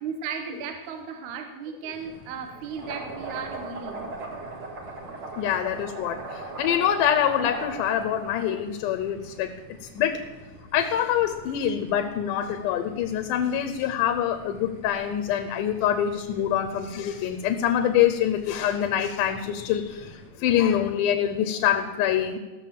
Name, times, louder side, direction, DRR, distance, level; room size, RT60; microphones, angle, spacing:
voice 1, 0.0-4.1, right 6 dB, 70° right, 6 dB, 2.3 m, -35 dB
sound 1, 1.9-20.3, right 2 dB, 45° right, 2.3 m, -41 dB
voice 2, 5.4-9.5 10.0-10.2 10.7-20.1 20.4-22.4, left 10 dB, 75° left, 8 dB, 2.2 m, -25 dB
16.0 x 6.8 x 7.5 m, 1.2 s
omnidirectional pair, 4.0 m